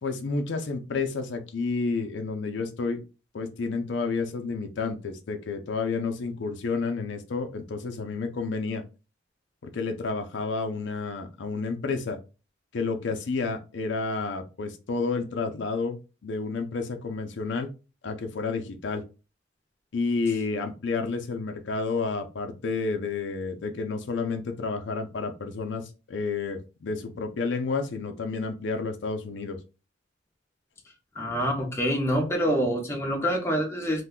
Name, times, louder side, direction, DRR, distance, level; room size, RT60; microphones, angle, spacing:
voice 1, 0.0-3.0 3.3-8.8 9.6-12.2 12.7-17.7 18.0-19.0 19.9-29.6, left 4 dB, 65° left, 0.5 m, -30 dB
voice 2, 31.2-34.0, equal, 15° left, 0.6 m, -26 dB
2.5 x 2.2 x 3.6 m
head